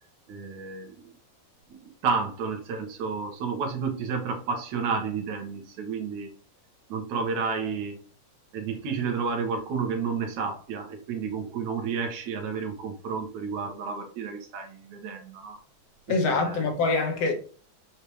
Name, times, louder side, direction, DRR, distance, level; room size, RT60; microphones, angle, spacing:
voice 1, 0.3-1.1 1.7-6.3 6.9-8.0 8.5-15.6 16.1-16.7, right 5 dB, 80° right, 2.8 m, -31 dB
voice 2, 16.1-17.4, left 3 dB, 60° left, 2.3 m, -24 dB
7.0 x 6.5 x 3.1 m
omnidirectional pair, 3.3 m